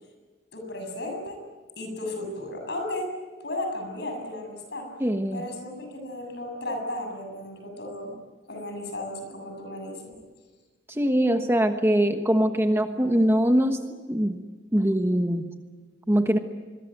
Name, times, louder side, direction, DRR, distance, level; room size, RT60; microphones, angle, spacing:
voice 1, 0.5-1.4 1.8-3.1 3.4-4.9 5.3-8.2 8.5-10.1, left 1 dB, 60° left, 4 dB, 7.3 m, -34 dB
voice 2, 5.0-5.4 10.9-13.8 14.1-14.4 14.7-15.5 16.1-16.4, equal, 15° right, 6 dB, 1.3 m, -22 dB
26.5 x 22.0 x 9.3 m, 1.4 s
head